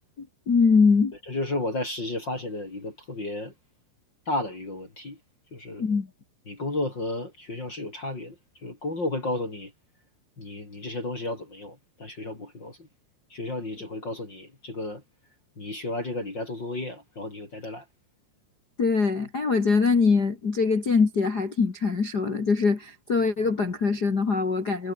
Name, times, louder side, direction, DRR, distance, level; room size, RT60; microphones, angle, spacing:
voice 1, 0.2-1.1 5.8-6.1 18.8-24.9, left 4 dB, 45° left, 1.3 m, -23 dB
voice 2, 1.3-3.5 4.3-5.2 5.5-5.9 6.5-8.3 8.6-9.7 10.4-12.9 13.3-15.0 15.6-17.8, left 2 dB, 25° left, 4.0 m, -33 dB
omnidirectional pair, 5.3 m